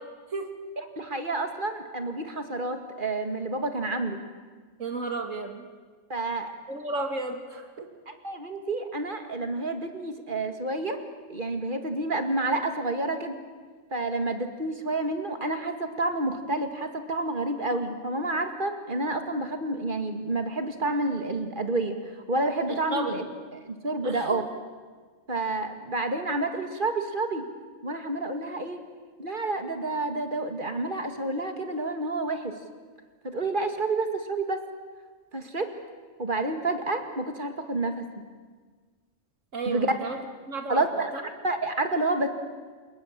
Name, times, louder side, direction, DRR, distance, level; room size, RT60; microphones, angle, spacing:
voice 1, 1.0-4.2 6.1-6.5 8.1-11.0 11.3-13.3 13.9-22.0 22.3-23.3 23.7-24.4 25.3-27.5 27.8-28.8 29.2-32.5 33.2-34.6 35.3-35.7 36.2-38.0 39.7-39.9 40.7-41.1 41.4-42.3, right 2 dB, 40° right, 6 dB, 2.1 m, -29 dB
voice 2, 4.8-5.7 6.7-7.9 22.7-23.2 24.0-24.4 39.5-40.2 40.5-41.3, right 3 dB, 70° right, 5 dB, 2.7 m, -33 dB
29.0 x 19.5 x 7.5 m, 1.5 s
omnidirectional pair, 1.4 m